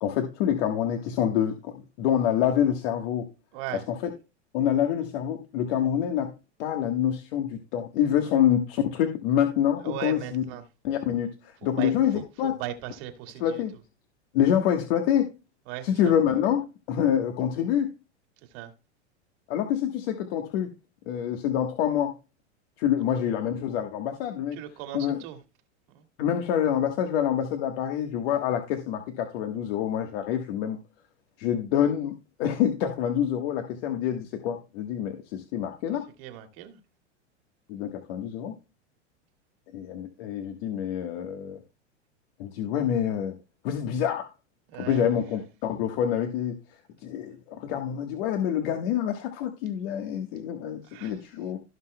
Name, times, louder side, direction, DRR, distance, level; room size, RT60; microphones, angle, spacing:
voice 1, 0.0-3.3 3.7-4.1 4.5-6.3 6.6-10.4 10.8-12.6 13.4-13.7 14.3-15.3 15.8-17.9 19.5-20.7 21.1-22.1 22.8-24.6 24.9-25.2 26.2-30.8 31.4-36.1 37.7-38.5 39.7-41.6 42.4-43.3 43.6-44.3 44.8-46.5 47.0-51.6, left 9 dB, 60° left, 5 dB, 1.4 m, -26 dB
voice 2, 9.8-10.6 11.6-11.9 12.4-13.6 15.7-16.1 18.5-18.7 24.6-25.4 25.9-26.0 36.2-36.8 44.7-45.1 50.9-51.1, right 13 dB, 55° right, 5 dB, 2.1 m, -37 dB
16.5 x 5.8 x 2.2 m, 0.29 s
hypercardioid pair, 110°, 35 cm